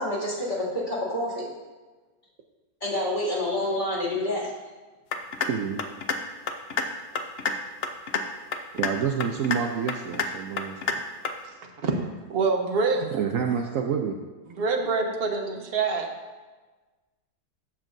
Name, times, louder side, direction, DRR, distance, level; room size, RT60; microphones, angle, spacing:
voice 1, 0.0-1.4 2.8-4.5, left 1 dB, 25° left, -8 dB, 2.6 m, -28 dB
sound 1, 5.1-5.5 5.8-6.2 6.5-6.8 7.1-7.5 7.8-8.2 8.5-8.9 9.2-9.6 9.9-10.3 10.6-10.9 11.2-11.3, left 6 dB, 65° left, 0.6 m, -27 dB
voice 2, 5.4-5.8 8.7-10.8 11.4-11.5 13.0-14.2, right 7 dB, 65° right, 3 dB, 0.8 m, -28 dB
voice 3, 11.6-12.0 12.3-13.2 14.5-16.1, right 4 dB, 40° right, 2 dB, 1.0 m, -26 dB
13.0 x 7.2 x 2.6 m, 1.3 s
omnidirectional pair, 1.8 m